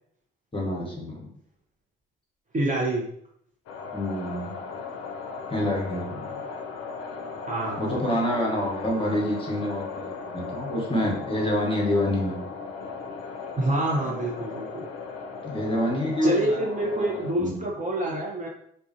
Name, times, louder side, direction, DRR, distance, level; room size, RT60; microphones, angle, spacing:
voice 1, 0.5-1.3 3.9-4.5 5.5-6.4 7.8-12.4 15.4-16.6 16.9-17.6, left 1 dB, 20° left, -2 dB, 1.0 m, -27 dB
voice 2, 2.5-3.0 7.5-8.0 13.6-14.9 16.2-18.5, right 1 dB, 25° right, -3 dB, 0.6 m, -27 dB
sound 1, 3.7-17.3, left 4 dB, 55° left, 0.5 m, -37 dB
2.4 x 2.1 x 2.6 m, 0.69 s
hypercardioid pair, 45°, 30 cm